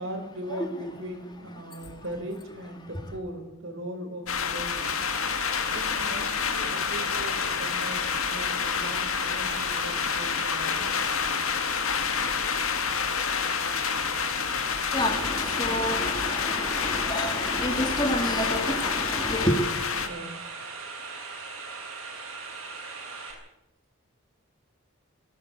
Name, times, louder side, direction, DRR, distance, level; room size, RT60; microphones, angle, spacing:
voice 1, 0.0-5.1 5.7-8.0 8.3-10.9 19.4-19.7 20.0-20.3, right 1 dB, 60° right, 4.4 m, -39 dB
voice 2, 0.5-0.8 14.9-19.6, left 1 dB, 20° left, 2.3 m, -28 dB
sound 1, 4.3-20.1, left 6 dB, 75° left, 1.9 m, -28 dB
sound 2, 4.8-23.3, right 4 dB, 85° right, 7.8 m, -39 dB
18.5 x 18.0 x 8.0 m
head